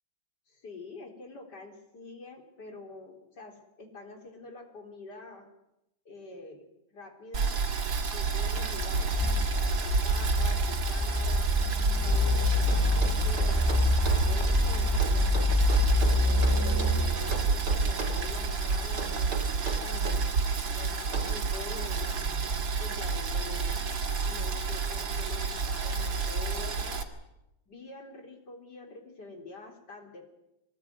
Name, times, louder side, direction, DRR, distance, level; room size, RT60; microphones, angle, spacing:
voice 1, 0.5-5.5 6.1-6.7 6.9-7.8 8.1-9.1 9.6-11.5 12.0-15.4 16.1-20.3 20.7-22.2 22.8-23.8 24.2-27.0 27.7-30.3, left 3 dB, 60° left, 4 dB, 4.4 m, -46 dB
Boiling, 7.3-27.0, right 5 dB, 85° right, 2.9 m, -29 dB
sound 1, 8.6-19.4, left 3 dB, 20° left, 0.8 m, -27 dB
sound 2, 12.7-14.3 15.0-17.0 17.3-18.2 19.0-20.2 21.1-21.4, right 4 dB, 60° right, 3.8 m, -38 dB
23.0 x 19.0 x 9.6 m, 0.89 s
omnidirectional pair, 2.0 m